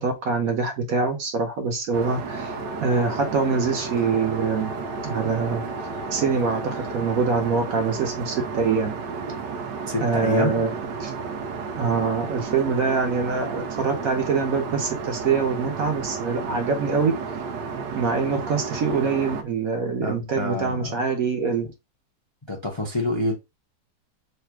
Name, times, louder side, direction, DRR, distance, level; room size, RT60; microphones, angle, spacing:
voice 1, 0.0-4.7 5.0-5.6 6.1-8.9 10.0-10.7 11.0-11.1 11.8-17.1 17.9-21.7, right 5 dB, 60° right, 1.1 m, -24 dB
Aircraft, 1.9-19.4, right 5 dB, 90° right, 1.3 m, -32 dB
sound 1, 2.3-7.5, left 8 dB, 65° left, 0.8 m, -41 dB
voice 2, 9.9-10.6 20.0-21.0 22.5-23.3, left 1 dB, 25° left, 0.6 m, -27 dB
3.3 x 2.5 x 4.5 m
omnidirectional pair, 1.8 m